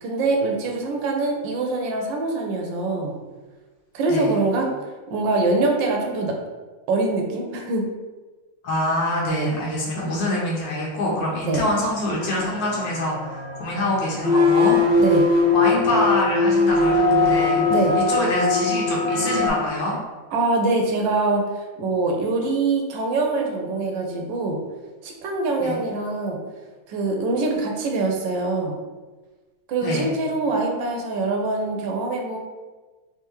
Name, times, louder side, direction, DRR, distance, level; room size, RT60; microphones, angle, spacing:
voice 1, 0.0-3.2 3.9-4.7 5.1-6.3 6.9-7.9 9.3-9.5 11.4-11.6 15.0-15.3 17.7-18.0 20.3-24.6 25.0-26.4 26.9-28.8 29.7-32.4, right 3 dB, 85° right, 2 dB, 1.4 m, -24 dB
voice 2, 8.6-15.0 15.5-17.6 18.0-20.0 25.6-25.8 29.8-30.1, left 1 dB, 90° left, -4 dB, 1.6 m, -25 dB
sound 1, 12.2-19.5, left 3 dB, 55° right, 0.9 m, -20 dB
3.5 x 3.4 x 3.0 m, 1.3 s
omnidirectional pair, 2.0 m